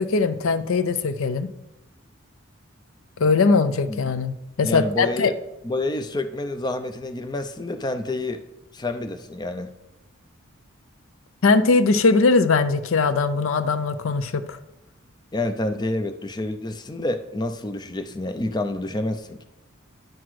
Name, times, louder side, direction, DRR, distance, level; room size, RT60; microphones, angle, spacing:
voice 1, 0.0-1.5 3.2-5.3 11.4-14.6, left 4 dB, 75° left, 12 dB, 0.6 m, -20 dB
voice 2, 4.6-5.3 5.6-8.4 8.7-9.7 15.3-19.4, left 2 dB, 20° left, 8 dB, 0.5 m, -28 dB
10.5 x 6.0 x 4.8 m, 0.95 s
head